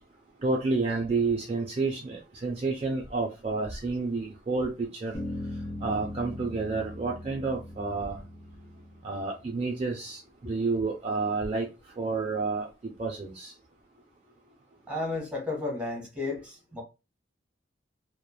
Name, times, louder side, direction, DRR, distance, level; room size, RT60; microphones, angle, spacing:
voice 1, 0.4-5.2 5.8-8.2 9.0-11.7 12.0-12.7 13.0-13.5, right 3 dB, 35° right, 0.4 m, -30 dB
sound 1, 5.1-9.5, left 1 dB, 40° left, 1.0 m, -39 dB
voice 2, 14.9-16.8, left 3 dB, 5° right, 1.1 m, -33 dB
3.1 x 2.1 x 2.2 m
head